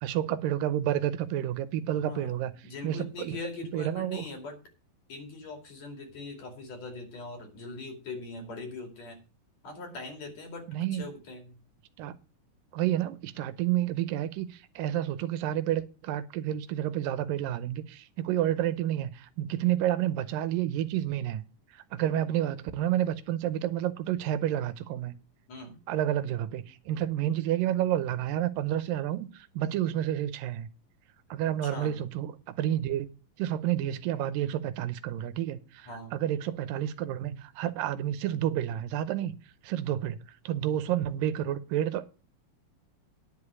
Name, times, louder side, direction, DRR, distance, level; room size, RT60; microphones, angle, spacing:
voice 1, 0.0-2.5 2.8-4.3 10.7-11.0 12.0-12.1 12.7-21.4 21.9-25.1 25.9-30.7 31.3-33.1 33.4-39.4 39.6-42.1, right 12 dB, 85° right, 2.4 m, -30 dB
voice 2, 2.0-4.6 5.1-9.2 9.6-10.6 10.9-11.6 25.5-25.8 31.6-32.0 35.9-36.1, left 3 dB, 55° left, 3.6 m, -41 dB
10.5 x 5.0 x 8.3 m
omnidirectional pair, 4.0 m